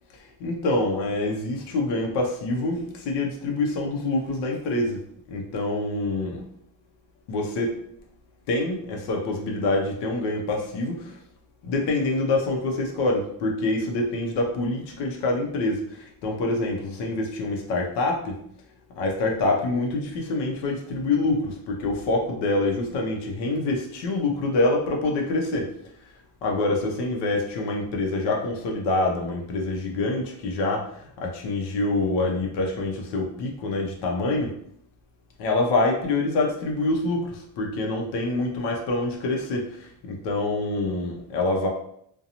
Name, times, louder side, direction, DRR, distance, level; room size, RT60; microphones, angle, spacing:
voice 1, 0.4-5.0 5.3-6.4 7.3-7.8 8.5-11.0 11.6-15.8 16.2-18.4 19.0-25.7 26.4-30.8 31.2-34.5 35.4-37.3 37.6-39.6 40.1-41.7, left 2 dB, 60° left, 0 dB, 0.7 m, -26 dB
2.5 x 2.2 x 2.8 m, 0.70 s
cardioid pair, 160°, 46 cm